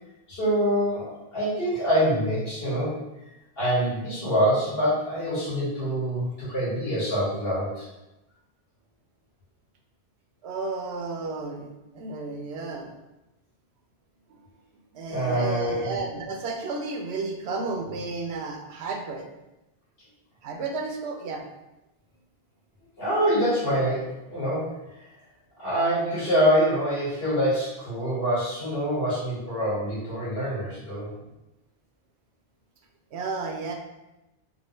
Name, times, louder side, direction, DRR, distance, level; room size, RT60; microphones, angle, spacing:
voice 1, 0.3-3.0 3.6-7.9 15.1-16.0 23.0-24.8 25.6-31.1, equal, 65° left, -9 dB, 1.9 m, -25 dB
voice 2, 10.4-11.7 11.9-12.9 14.9-19.3 20.4-21.4 31.2-31.3 33.1-33.7, right 3 dB, 85° right, 2 dB, 0.9 m, -32 dB
3.6 x 2.5 x 3.1 m, 0.96 s
omnidirectional pair, 1.1 m